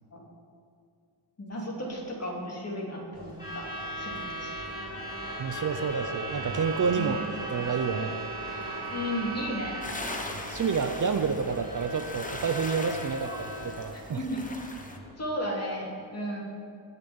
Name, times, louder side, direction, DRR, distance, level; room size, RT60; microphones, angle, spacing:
voice 1, 1.4-3.7 4.0-4.5 7.0-7.2 8.9-9.8 13.2-13.4 13.9-14.4 15.2-16.4, equal, 35° left, -2 dB, 2.8 m, -34 dB
Truck / Alarm, 3.1-15.1, right 1 dB, 10° right, 4.4 m, -38 dB
voice 2, 5.4-7.2 7.5-8.2 10.5-14.4, right 5 dB, 45° right, 7 dB, 0.6 m, -29 dB
sound 1, 9.8-15.0, left 2 dB, 15° left, 1.1 m, -40 dB
19.5 x 6.9 x 7.1 m, 2.3 s
wide cardioid pair, 175°, 45 cm